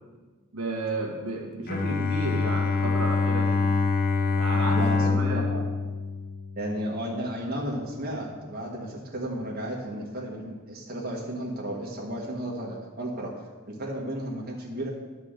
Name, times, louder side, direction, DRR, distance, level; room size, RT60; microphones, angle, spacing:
voice 1, 0.5-3.6 4.4-5.5, right 1 dB, 80° right, -1 dB, 1.6 m, -32 dB
Bowed string instrument, 1.7-6.9, left 4 dB, 40° left, 0.7 m, -25 dB
voice 2, 4.7-5.6 6.6-13.3 13.7-14.9, right 1 dB, 45° right, -3 dB, 1.6 m, -33 dB
10.0 x 4.8 x 6.7 m, 1.3 s
head